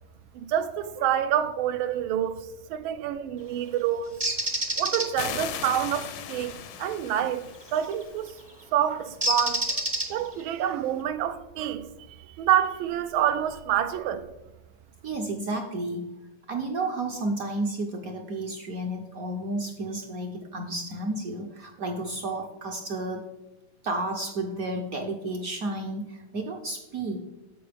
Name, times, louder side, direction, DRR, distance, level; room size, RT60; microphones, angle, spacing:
voice 1, 0.3-2.4 2.7-4.2 4.8-8.3 8.7-9.8 10.1-11.9 12.2-14.2, right 10 dB, 85° right, 1.4 m, -27 dB
Bird, 4.2-5.1 7.7-7.9 9.2-10.4, right 1 dB, 30° right, 0.5 m, -27 dB
sound 1, 5.2-8.5, left 9 dB, 75° left, 1.2 m, -38 dB
voice 2, 15.0-16.1 16.5-23.3 23.8-27.2, right 2 dB, 60° right, 0.9 m, -32 dB
13.5 x 4.6 x 3.4 m
omnidirectional pair, 2.2 m